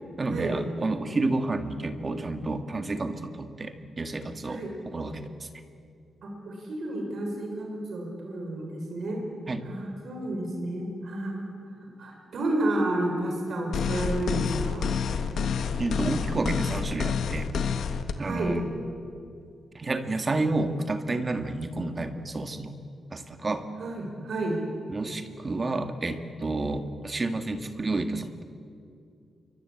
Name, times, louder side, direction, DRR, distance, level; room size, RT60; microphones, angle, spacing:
voice 1, 0.2-4.6 4.9-5.5 9.5-9.7 15.8-17.5 18.2-18.6 19.7-22.7 23.1-23.7 24.9-28.4, right 2 dB, 25° right, 8 dB, 1.7 m, -30 dB
voice 2, 4.4-4.8 6.2-9.2 9.6-11.5 12.0-14.9 18.2-18.6 23.8-24.7, right 1 dB, 50° right, 1 dB, 5.5 m, -31 dB
sound 1, 13.7-18.1, left 6 dB, 70° left, 1.6 m, -28 dB
27.5 x 24.0 x 8.5 m, 2.4 s
wide cardioid pair, 170°, 0 cm